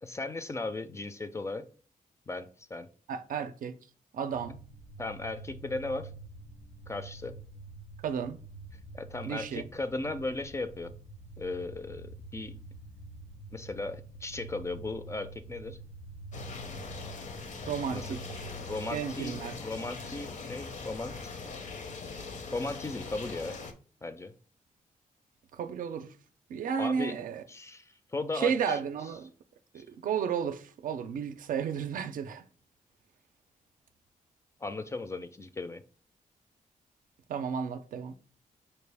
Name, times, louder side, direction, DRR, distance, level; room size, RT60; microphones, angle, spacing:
voice 1, 0.0-1.7 2.3-2.9 5.0-6.1 6.9-7.4 8.9-10.9 11.4-12.5 13.5-15.8 17.9-18.2 18.6-21.3 22.5-23.6 24.0-24.3 26.8-27.2 27.5-28.8 29.8-29.9 34.6-35.8, left 2 dB, 20° left, 0.3 m, -36 dB
voice 2, 3.1-3.7 4.1-4.6 8.0-8.4 9.3-9.7 17.6-18.2 18.9-19.6 25.5-26.1 26.5-27.4 28.3-29.3 29.7-32.4 37.3-38.1, right 7 dB, 75° right, 0.4 m, -33 dB
sound 1, 4.3-21.1, right 3 dB, 80° left, 1.1 m, -47 dB
sound 2, 16.3-23.7, left 4 dB, 60° left, 0.6 m, -41 dB
5.3 x 2.3 x 3.3 m
cardioid pair, 110°, 14 cm